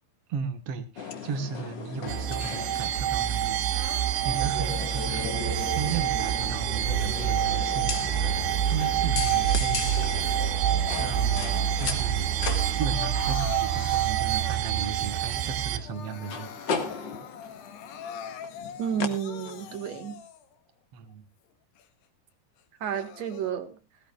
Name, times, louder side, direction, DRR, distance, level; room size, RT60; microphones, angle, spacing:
voice 1, 0.3-10.6 11.0-17.1 20.9-21.3, right 6 dB, 75° right, 8 dB, 1.4 m, -36 dB
sound 1, 1.0-19.9, left 5 dB, 50° left, 1.3 m, -37 dB
sound 2, 2.1-15.8, right 11 dB, 90° right, 3.2 m, -27 dB
Crying sobbing, 3.7-6.2 6.8-8.6 9.0-11.9 12.3-14.9 15.4-15.5 15.7-20.6 21.1-21.2 21.8-21.9 22.6-23.5, left 8 dB, 80° left, 3.4 m, -44 dB
voice 2, 18.8-20.2 22.8-23.8, right 8 dB, 50° right, 8 dB, 2.4 m, -31 dB
18.5 x 17.0 x 2.4 m, 0.29 s
omnidirectional pair, 4.8 m